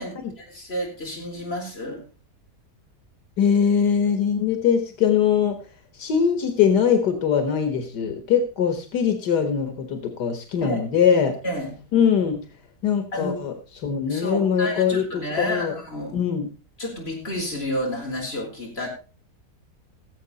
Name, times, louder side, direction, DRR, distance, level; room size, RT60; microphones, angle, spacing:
voice 1, 0.0-2.0 10.6-10.8 11.4-11.8 13.1-13.4 14.1-16.2 16.8-18.9, equal, 40° left, -1 dB, 4.3 m, -30 dB
voice 2, 3.4-5.7 5.9-11.4 11.9-12.4 12.8-13.5 13.8-15.7 16.1-16.5, left 7 dB, 90° left, 7 dB, 2.1 m, -22 dB
17.5 x 7.7 x 4.1 m, 0.33 s
omnidirectional pair, 1.7 m